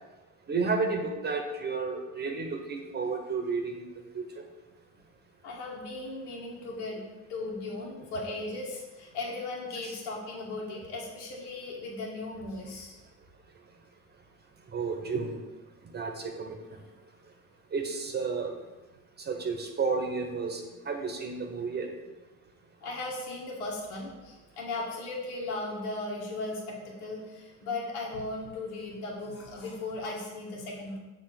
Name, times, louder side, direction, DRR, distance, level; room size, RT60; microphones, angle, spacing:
voice 1, 0.5-3.9 4.1-4.3 9.8-9.9 14.7-15.4 15.9-16.6 17.7-18.5 19.3-20.6 20.9-21.9, right 4 dB, 30° right, 3 dB, 0.9 m, -31 dB
voice 2, 5.4-7.0 7.3-13.0 22.8-31.0, left 2 dB, 85° left, -4 dB, 1.4 m, -37 dB
6.8 x 2.9 x 5.8 m, 1.1 s
supercardioid pair, 100°, 35 cm